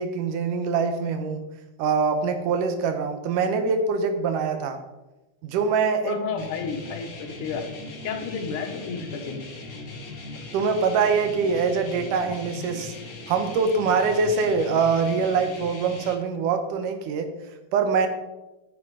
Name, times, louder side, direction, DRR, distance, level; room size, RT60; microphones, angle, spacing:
voice 1, 0.0-1.4 1.8-4.8 5.4-6.2 10.5-12.9 13.3-17.3 17.7-18.1, right 5 dB, 85° right, 7 dB, 2.7 m, -24 dB
voice 2, 6.0-7.7 8.0-9.4, left 5 dB, 80° left, 4 dB, 2.8 m, -31 dB
sound 1, 6.4-16.2, left 3 dB, 35° left, 1.5 m, -39 dB
10.0 x 8.7 x 4.9 m, 1.0 s
omnidirectional pair, 3.6 m